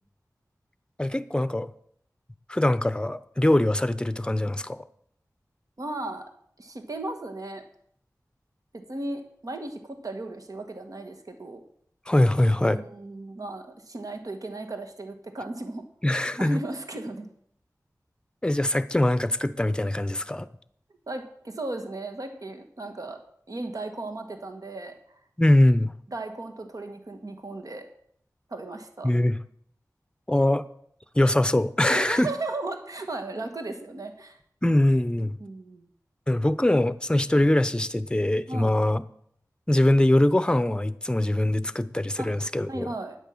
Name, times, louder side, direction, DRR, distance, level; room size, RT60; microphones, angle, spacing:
voice 1, 1.0-1.7 2.5-4.8 12.1-12.8 16.0-16.6 18.4-20.5 25.4-25.9 29.0-29.4 30.3-30.6 31.1-32.3 34.6-35.4 36.3-39.0 39.7-42.9, left 1 dB, 15° left, 14 dB, 0.7 m, -22 dB
voice 2, 5.8-6.2 6.6-7.6 8.7-11.6 12.7-15.8 16.1-17.3 21.1-23.2 23.5-24.9 26.1-27.8 28.5-29.1 31.9-34.4 35.4-35.9 38.5-38.7 42.2-42.3 42.7-43.2, right 2 dB, 65° right, 5 dB, 1.6 m, -36 dB
10.0 x 9.3 x 7.1 m, 0.65 s
wide cardioid pair, 70°, 7 cm